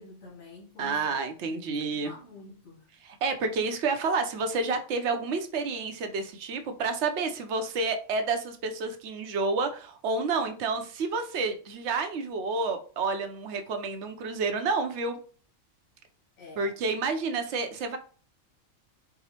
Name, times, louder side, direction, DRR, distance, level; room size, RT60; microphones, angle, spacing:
voice 1, 0.0-1.2 1.7-2.9 16.4-16.7, left 3 dB, 85° left, 1.4 m, -48 dB
voice 2, 0.8-2.1 3.0-15.2 16.6-18.0, right 4 dB, 65° right, 0.8 m, -29 dB
4.7 x 2.0 x 2.8 m
omnidirectional pair, 1.4 m